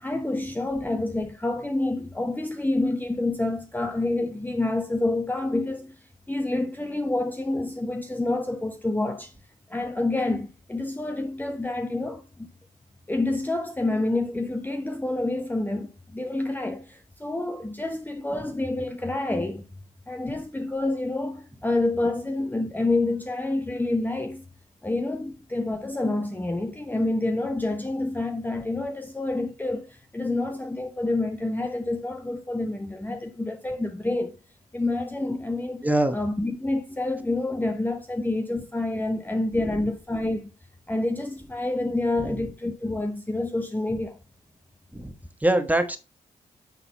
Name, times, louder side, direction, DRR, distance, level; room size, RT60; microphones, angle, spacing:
voice 1, 0.0-5.9 6.3-9.3 9.7-12.5 13.1-19.6 20.1-24.4 24.8-34.3 34.7-35.8 36.1-40.5 40.9-44.2, left 2 dB, 10° left, 0.8 m, -28 dB
voice 2, 35.8-36.2 39.6-39.8 42.2-42.3 44.9-45.1 45.4-46.0, right 1 dB, 10° right, 1.2 m, -24 dB
9.0 x 3.9 x 4.1 m
supercardioid pair, 50°, 16 cm